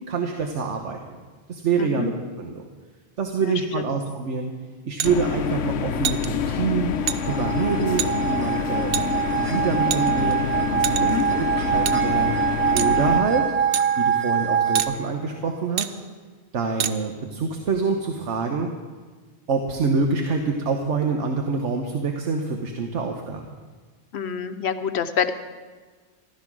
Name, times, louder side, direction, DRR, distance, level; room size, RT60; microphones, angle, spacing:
voice 1, 0.1-1.0 1.5-2.1 2.4-2.6 3.2-4.5 4.8-6.9 7.2-9.0 9.3-13.4 14.0-16.0 16.5-18.7 19.5-23.4, right 4 dB, 75° right, 3 dB, 1.4 m, -26 dB
voice 2, 1.8-2.1 3.4-3.8 11.0-11.2 24.1-25.3, left 7 dB, 65° left, 9 dB, 1.0 m, -27 dB
sound 1, 5.0-13.2, left 7 dB, 85° left, 1.0 m, -27 dB
sound 2, 5.0-5.1 6.0-6.3 7.1-7.2 8.0-8.1 8.9-9.0 9.9-10.3 10.8-11.2 11.8-12.0 12.8-12.9 13.7-13.8 14.7-14.9 15.8-15.9 16.8-16.9, right 9 dB, 60° right, 0.8 m, -26 dB
sound 3, 7.0-14.8, right 8 dB, 10° right, 0.8 m, -24 dB
14.5 x 12.5 x 6.1 m, 1.4 s
omnidirectional pair, 1.2 m